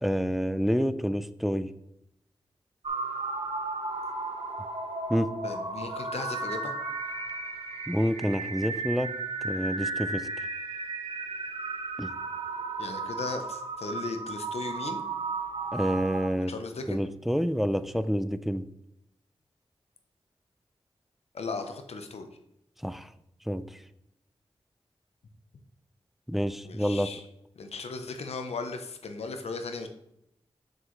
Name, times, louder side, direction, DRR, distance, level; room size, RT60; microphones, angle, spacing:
voice 1, 0.0-1.7 5.1-5.4 7.9-9.1 9.4-10.3 12.0-12.1 15.7-16.5 16.9-18.7 22.8-23.1 23.5-23.8 26.3-27.1, equal, ahead, 13 dB, 0.4 m, -28 dB
sound 1, 2.8-16.3, right 3 dB, 70° right, 1.1 m, -34 dB
voice 2, 5.4-6.8 12.8-15.0 16.5-17.1 21.3-22.3 26.6-27.2 27.6-29.9, left 4 dB, 90° left, 7 dB, 0.8 m, -37 dB
7.1 x 6.4 x 3.1 m, 0.78 s
cardioid pair, 55°, 10 cm